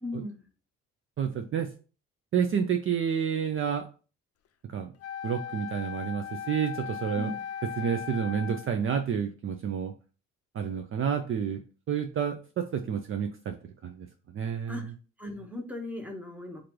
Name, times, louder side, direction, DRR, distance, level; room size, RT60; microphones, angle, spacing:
voice 1, 0.0-0.4 7.1-7.4 14.7-14.8 15.2-16.7, left 2 dB, 5° right, 2 dB, 1.0 m, -37 dB
voice 2, 1.2-1.7 2.3-3.8 4.7-4.9 5.2-7.3 7.8-9.9 10.5-11.6 11.9-13.5 13.8-14.1 14.3-14.9, right 7 dB, 45° right, 5 dB, 0.5 m, -29 dB
Wind instrument woodwind instrument, 5.0-8.8, left 8 dB, 55° left, 0.5 m, -38 dB
3.1 x 2.6 x 4.4 m, 0.35 s
cardioid pair, 90°, 30 cm